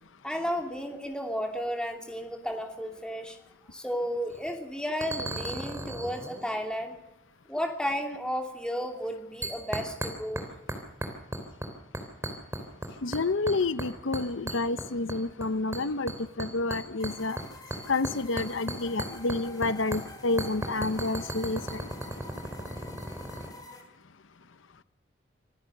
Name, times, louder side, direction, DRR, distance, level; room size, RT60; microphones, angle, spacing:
voice 1, 0.2-3.4 3.7-7.0 7.5-10.5, equal, 5° left, 3 dB, 2.6 m, -33 dB
sound 1, 4.3-4.5 5.0-6.6 9.4-10.4 10.7-11.7 11.9-12.9 13.1-13.9 14.1-15.4 15.7-19.7 19.9-20.0 20.4-23.5, right 1 dB, 15° right, 3.3 m, -35 dB
voice 2, 13.0-17.4 17.9-21.9, left 3 dB, 80° left, 14 dB, 0.8 m, -29 dB
sound 2, 17.0-23.8, left 2 dB, 20° left, 3.4 m, -48 dB
26.0 x 15.0 x 6.7 m, 0.86 s
head